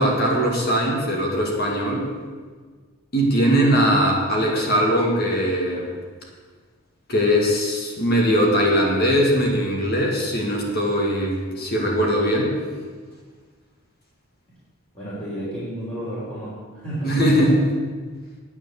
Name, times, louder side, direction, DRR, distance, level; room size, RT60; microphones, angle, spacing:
voice 1, 0.0-2.1 3.1-5.9 7.1-12.6 17.0-17.6, equal, 45° left, -1 dB, 2.1 m, -20 dB
voice 2, 14.9-17.6, right 1 dB, 30° left, -11 dB, 3.5 m, -31 dB
9.5 x 9.3 x 7.1 m, 1.5 s
head